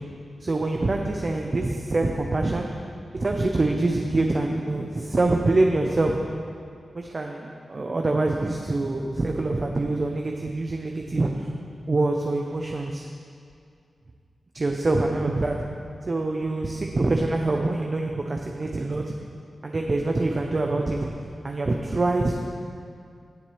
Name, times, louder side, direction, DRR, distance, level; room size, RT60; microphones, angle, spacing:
voice 1, 0.4-2.7 3.1-6.2 6.9-11.5 11.9-13.1 14.5-15.6 16.0-19.0 19.6-21.1 21.4-22.4, right 2 dB, 45° right, 2 dB, 0.7 m, -25 dB
17.0 x 7.2 x 3.3 m, 2.3 s
cardioid pair, 55°, 0 cm